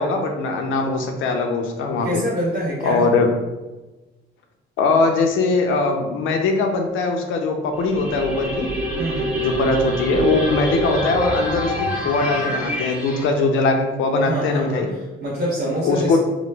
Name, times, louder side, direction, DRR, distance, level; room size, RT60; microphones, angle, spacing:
voice 1, 0.0-2.2 2.8-3.3 4.8-8.7 9.4-14.9 15.8-16.2, left 3 dB, 85° left, 3 dB, 0.5 m, -21 dB
voice 2, 2.0-3.2 9.0-9.3 14.3-16.2, right 1 dB, 55° right, -6 dB, 0.8 m, -26 dB
sound 1, 7.8-13.3, right 1 dB, 10° right, 1.1 m, -26 dB
3.0 x 2.0 x 3.2 m, 1.1 s
cardioid pair, 90°, 20 cm